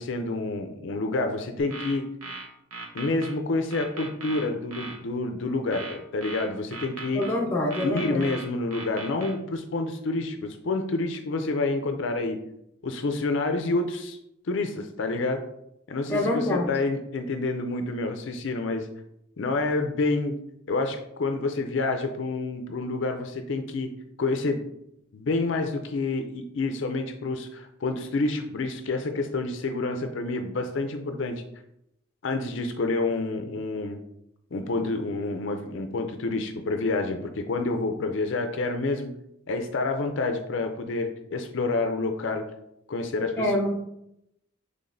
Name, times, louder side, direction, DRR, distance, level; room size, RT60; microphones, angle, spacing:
voice 1, 0.0-2.1 2.9-7.2 7.8-12.4 12.8-14.2 14.5-15.4 15.9-18.9 19.4-20.4 20.7-24.6 25.1-31.4 32.2-34.0 34.5-39.1 39.5-42.5 42.9-43.5, left 3 dB, 60° left, 5 dB, 0.4 m, -28 dB
sound 1, 1.6-3.3 3.7-5.0 5.7-7.3 7.7-9.3, right 3 dB, 90° right, 0.8 m, -38 dB
voice 2, 7.1-8.3 16.1-16.7 43.4-43.7, left 1 dB, 10° left, -2 dB, 0.7 m, -26 dB
5.8 x 3.3 x 2.6 m, 0.80 s
head